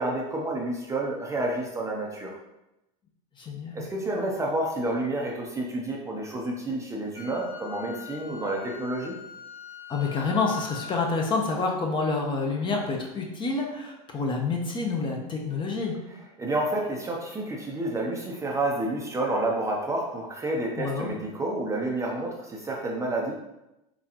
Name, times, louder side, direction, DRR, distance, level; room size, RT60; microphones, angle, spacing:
voice 1, 0.0-2.4 3.7-9.2 16.4-23.3, right 2 dB, 15° right, -1 dB, 0.6 m, -29 dB
voice 2, 3.4-3.9 9.9-15.9 20.8-21.1, left 4 dB, 25° left, 1 dB, 0.8 m, -28 dB
Wind instrument woodwind instrument, 7.1-11.0, left 9 dB, 50° left, 1.3 m, -43 dB
4.0 x 3.7 x 2.9 m, 0.93 s
supercardioid pair, 115°, 20 cm